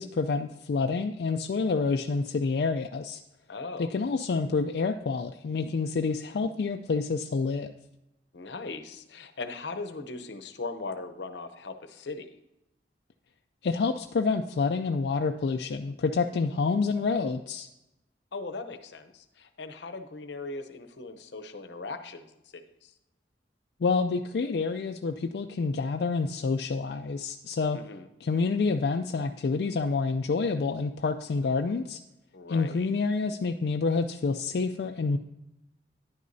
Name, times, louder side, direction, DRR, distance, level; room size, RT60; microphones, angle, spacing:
voice 1, 0.0-3.2 3.8-7.7 13.6-17.7 23.8-27.8 28.2-32.0 32.5-35.2, left 4 dB, 65° left, 5 dB, 0.4 m, -28 dB
voice 2, 3.5-3.9 8.3-12.3 18.3-22.3 22.5-22.9 27.7-28.1 32.3-32.9, left 3 dB, 85° left, 9 dB, 0.7 m, -39 dB
10.5 x 9.4 x 2.7 m, 0.91 s
head